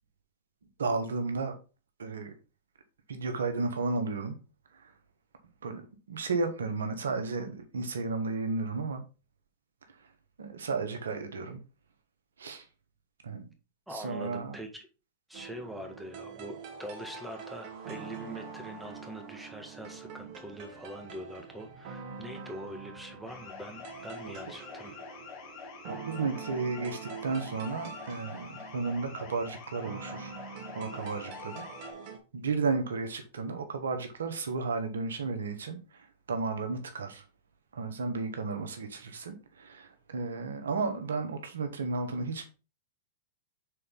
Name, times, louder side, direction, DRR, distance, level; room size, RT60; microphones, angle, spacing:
voice 1, 0.8-1.6 2.0-2.3 3.1-4.3 4.7-4.9 5.6-9.0 9.9-10.1 10.4-11.6 12.4-12.7 13.2-13.5 13.9-14.6 25.9-30.3 30.7-31.6 32.3-37.2 37.7-42.5, right 4 dB, 85° right, 1.4 m, -33 dB
voice 2, 13.9-14.9 15.3-25.0, equal, 5° right, 1.7 m, -43 dB
sound 1, 15.3-32.2, right 5 dB, 50° right, 1.6 m, -45 dB
sound 2, 23.3-31.9, left 6 dB, 45° left, 2.5 m, -46 dB
6.4 x 4.1 x 3.8 m
hypercardioid pair, 115°, 0 cm